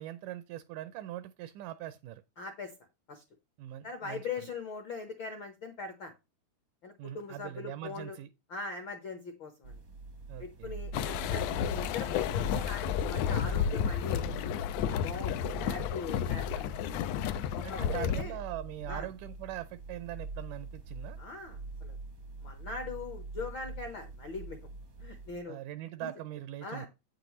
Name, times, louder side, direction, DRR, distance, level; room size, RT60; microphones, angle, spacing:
voice 1, 0.0-2.2 3.6-4.3 7.0-8.3 10.3-10.8 17.6-21.2 25.5-26.9, right 13 dB, 80° right, 2.0 m, -41 dB
voice 2, 2.4-2.7 3.1-3.2 3.8-6.1 6.8-8.2 8.5-9.8 10.4-14.3 15.0-15.3 15.6-16.8 17.5-18.4 18.9-19.1 21.2-22.0 22.4-24.6 25.0-25.6 26.0-26.1 26.6-26.9, left 4 dB, 65° left, 1.2 m, -41 dB
sound 1, 9.6-25.4, right 3 dB, 65° right, 0.9 m, -44 dB
sound 2, 10.9-18.2, left 9 dB, 85° left, 1.5 m, -32 dB
8.6 x 7.6 x 3.1 m
omnidirectional pair, 3.7 m